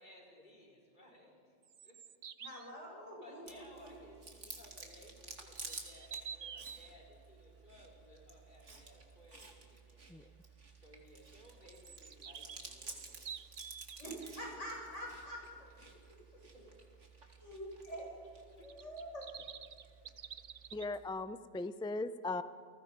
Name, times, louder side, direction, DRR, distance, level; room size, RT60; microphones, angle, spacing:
voice 1, 0.0-1.3 1.8-1.9 3.2-13.4 15.9-16.1 16.5-16.7 17.9-18.0 18.6-18.7, left 1 dB, 40° left, -2 dB, 4.9 m, -60 dB
sound 1, 1.6-2.7 5.5-6.9 11.7-14.3 18.6-20.9, right 7 dB, 50° right, 0.7 m, -49 dB
voice 2, 2.4-3.9 14.0-15.7 17.4-18.1 18.6-19.3, equal, 85° left, -2 dB, 7.5 m, -46 dB
Chewing mastication, 3.5-21.1, right 3 dB, 85° right, 2.8 m, -53 dB
voice 3, 20.7-22.4, left 2 dB, 5° left, 12 dB, 0.3 m, -38 dB
29.5 x 19.0 x 5.4 m, 2.2 s
omnidirectional pair, 1.2 m